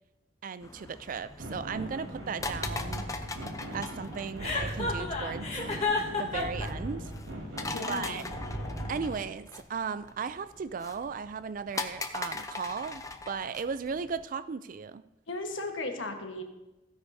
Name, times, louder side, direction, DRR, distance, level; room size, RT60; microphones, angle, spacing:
voice 1, 0.4-3.0 3.7-5.4 6.2-7.1 7.9-8.2 8.9-15.0, right 5 dB, 45° right, 15 dB, 0.4 m, -36 dB
sound 1, 0.6-14.2, left 3 dB, 15° left, 0.6 m, -41 dB
sound 2, 1.4-9.2, right 1 dB, 85° right, 3.5 m, -39 dB
Chuckle chortle, 4.4-6.7, left 3 dB, 35° left, 1.6 m, -30 dB
voice 2, 7.7-8.2 15.3-16.4, left 2 dB, 85° left, 4 dB, 1.4 m, -35 dB
16.0 x 9.8 x 2.7 m, 0.99 s
head